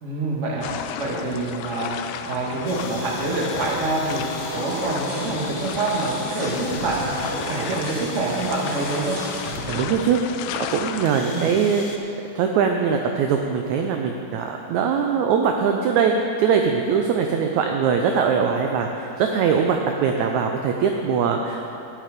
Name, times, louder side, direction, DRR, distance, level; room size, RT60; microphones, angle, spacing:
voice 1, 0.0-2.0 2.3-4.3 4.5-9.2 11.2-11.5, right 2 dB, 30° right, -3 dB, 1.3 m, -26 dB
sound 1, 0.6-11.1, left 9 dB, 85° left, 2.3 m, -34 dB
sound 2, 2.7-9.8 10.7-10.8 11.1-12.0, left 4 dB, 70° left, 2.4 m, -39 dB
sound 3, 4.3-9.8, right 1 dB, 50° right, 2.0 m, -35 dB
voice 2, 9.7-10.2 10.7-12.0 12.3-16.1 16.4-21.7, right 6 dB, 85° right, 3 dB, 1.6 m, -21 dB
12.0 x 9.9 x 5.2 m, 2.7 s
omnidirectional pair, 4.0 m